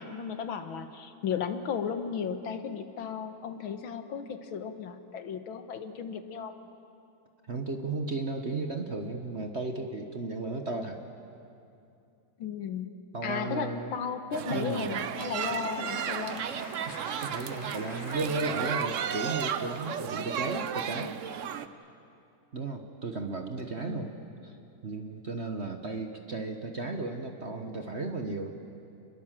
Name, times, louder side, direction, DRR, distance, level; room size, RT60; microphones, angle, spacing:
voice 1, 0.0-6.6 12.4-16.5 23.8-24.1, left 7 dB, 75° left, 8 dB, 2.0 m, -35 dB
voice 2, 7.5-11.0 13.1-14.0 14.5-15.0 16.8-21.2 22.5-24.1 24.4-24.6 24.8-28.5, right 3 dB, 40° right, 5 dB, 1.2 m, -34 dB
sound 1, 14.3-21.7, right 8 dB, 75° right, 0.7 m, -34 dB
Applause, 15.3-19.8, left 1 dB, 35° left, 5.3 m, -47 dB
29.5 x 21.0 x 7.5 m, 2.6 s
omnidirectional pair, 2.3 m